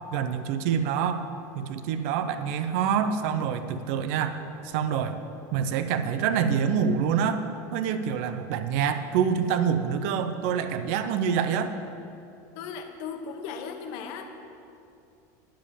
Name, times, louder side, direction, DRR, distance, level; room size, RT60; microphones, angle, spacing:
voice 1, 0.1-1.2 1.6-4.4 4.6-5.2 5.5-7.4 7.7-11.7, right 7 dB, 55° right, 10 dB, 0.7 m, -26 dB
voice 2, 12.5-14.3, left 6 dB, 50° left, 5 dB, 1.1 m, -37 dB
10.0 x 7.3 x 8.7 m, 2.6 s
supercardioid pair, 170°, 9 cm